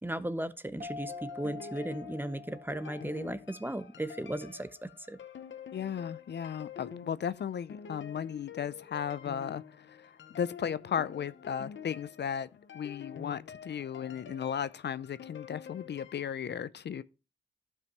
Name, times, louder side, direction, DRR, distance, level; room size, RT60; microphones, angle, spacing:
voice 1, 0.0-5.2, right 1 dB, 10° right, 0.7 m, -36 dB
sound 1, 0.8-4.1, left 4 dB, 45° right, 1.7 m, -46 dB
sound 2, 1.1-16.4, left 7 dB, 90° left, 0.9 m, -48 dB
voice 2, 5.7-10.1 10.4-12.5 12.7-17.0, left 8 dB, 65° left, 0.5 m, -35 dB
12.0 x 5.5 x 3.0 m
cardioid pair, 50°, 19 cm